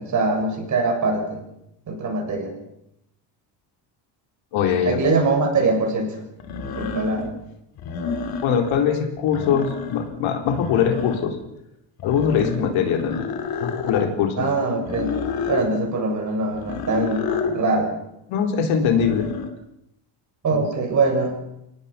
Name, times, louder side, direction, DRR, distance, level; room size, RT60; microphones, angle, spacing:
voice 1, 0.0-1.4 1.9-2.6 4.8-6.2 6.6-7.3 14.4-15.2 15.5-17.9 20.4-21.4, right 3 dB, 35° right, 2 dB, 7.1 m, -23 dB
voice 2, 4.5-5.0 8.4-11.3 12.0-13.3 13.6-14.3 18.3-19.3 20.5-20.6, left 7 dB, 75° left, 3 dB, 4.0 m, -22 dB
sound 1, 5.0-5.1 6.4-7.3 7.8-8.8 9.2-10.1 10.5-11.4 12.0-14.1 14.8-15.7 16.5-17.6 18.8-19.5, left 5 dB, 50° left, 2.9 m, -29 dB
25.0 x 19.0 x 5.9 m, 0.83 s
cardioid pair, 135°, 48 cm